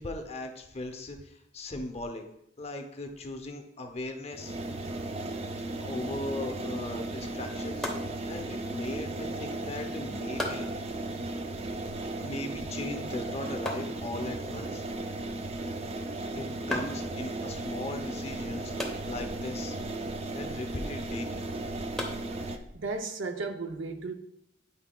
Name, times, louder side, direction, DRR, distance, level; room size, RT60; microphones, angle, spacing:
voice 1, 0.0-2.2 2.6-4.6 5.8-7.9 8.3-10.7 12.2-14.8 16.3-19.8 20.3-21.4, left 2 dB, 35° left, 0.7 m, -38 dB
sound 1, 4.3-22.6, right 2 dB, 35° right, 0.4 m, -36 dB
voice 2, 4.7-5.1 22.5-24.1, right 3 dB, 80° right, 0.6 m, -36 dB
sound 2, 7.8-23.0, left 1 dB, 5° left, 0.9 m, -42 dB
8.5 x 5.7 x 2.3 m
head